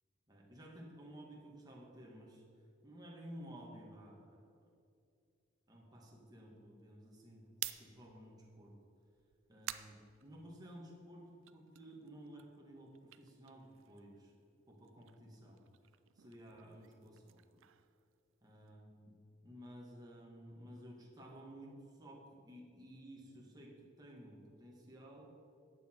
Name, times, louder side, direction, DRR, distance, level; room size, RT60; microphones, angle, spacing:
voice 1, 0.3-2.4 2.8-4.6 5.7-7.5 7.8-8.8 9.5-14.3 14.7-15.6 16.2-17.4 18.4-19.1 19.4-25.4, equal, 20° right, -3 dB, 1.9 m, -54 dB
sound 1, 7.4-10.9 11.3-14.3 14.6-18.7, right 14 dB, 85° right, 0.4 m, -51 dB
11.5 x 8.6 x 4.6 m, 2.5 s
head